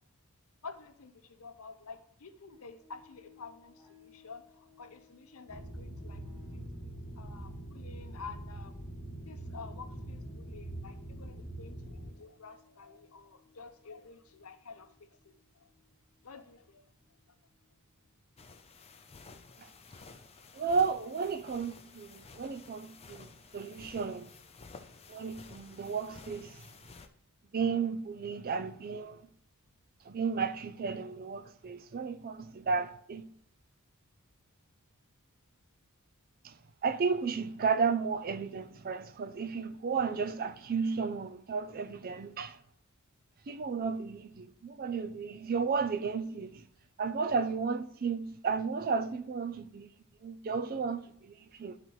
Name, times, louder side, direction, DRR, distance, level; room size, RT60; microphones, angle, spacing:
voice 1, 0.6-8.8 9.2-15.3 15.6-15.7 16.2-16.8, left 5 dB, 70° left, 0.7 m, -50 dB
sound 1, 2.5-19.0 19.3-19.4, left 6 dB, 10° right, 2.0 m, -64 dB
sound 2, 5.5-12.1, right 1 dB, 5° left, 1.9 m, -43 dB
sound 3, 18.4-27.1, left 4 dB, 25° left, 0.5 m, -53 dB
voice 2, 20.5-24.3 25.1-26.7 27.5-29.2 30.1-33.3 36.4-36.5 36.8-42.6 43.5-46.6 47.0-49.9 50.2-51.8, right 5 dB, 40° right, 0.4 m, -33 dB
11.5 x 4.1 x 3.1 m
head